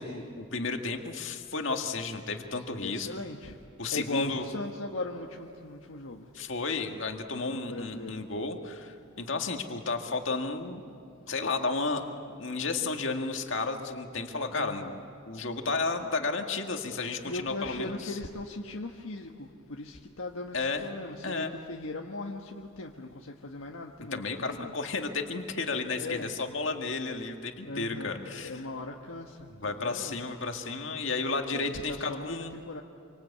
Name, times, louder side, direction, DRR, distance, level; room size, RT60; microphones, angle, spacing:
voice 1, 0.0-3.1 3.8-4.4 6.3-10.8 11.3-12.0 12.4-14.9 15.2-18.2 20.5-20.9 21.2-21.5 24.1-28.6 29.5-32.6, left 3 dB, 60° left, 4 dB, 2.1 m, -32 dB
voice 2, 2.8-3.5 3.9-6.3 7.5-8.2 14.5-15.0 17.2-24.7 25.9-26.3 27.6-30.2 31.5-32.8, left 2 dB, 80° left, 1 dB, 1.4 m, -39 dB
27.0 x 25.0 x 8.5 m, 2.7 s
head